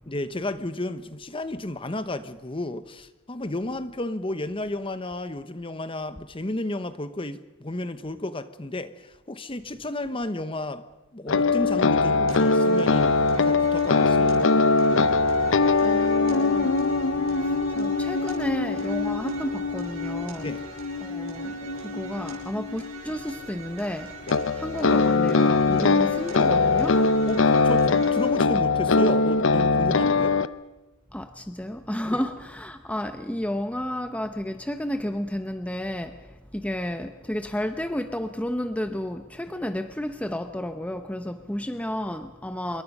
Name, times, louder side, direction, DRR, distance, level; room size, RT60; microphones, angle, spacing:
voice 1, 0.1-10.8 11.1-14.5 20.4-20.6 24.3-24.4 27.3-30.4 32.0-32.2, left 1 dB, 25° left, 12 dB, 1.0 m, -32 dB
sound 1, 11.3-23.2 24.3-30.5, left 3 dB, 65° left, 0.7 m, -22 dB
sound 2, 12.3-28.3, right 4 dB, 85° right, 5.7 m, -44 dB
voice 2, 15.8-16.7 17.3-20.5 21.0-27.3 31.1-42.8, left 1 dB, 5° left, 8 dB, 0.8 m, -32 dB
26.5 x 22.5 x 5.5 m, 1.1 s
head